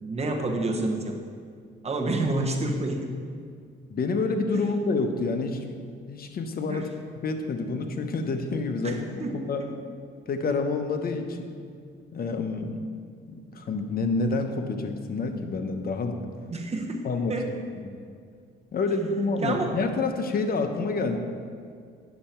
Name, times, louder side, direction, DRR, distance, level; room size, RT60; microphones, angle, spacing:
voice 1, 0.0-1.2 1.8-3.2 4.5-4.6 6.7-6.9 8.8-9.7 16.5-17.0 17.3-17.5 19.4-19.7, right 2 dB, 30° right, 2 dB, 1.2 m, -29 dB
voice 2, 3.9-5.8 6.1-6.9 7.2-9.6 10.3-11.5 12.1-12.8 13.3-16.2 17.0-17.4 17.8-17.9 18.7-21.2, left 3 dB, 50° left, 6 dB, 0.9 m, -28 dB
9.3 x 6.6 x 4.4 m, 2.2 s
cardioid pair, 90°, 20 cm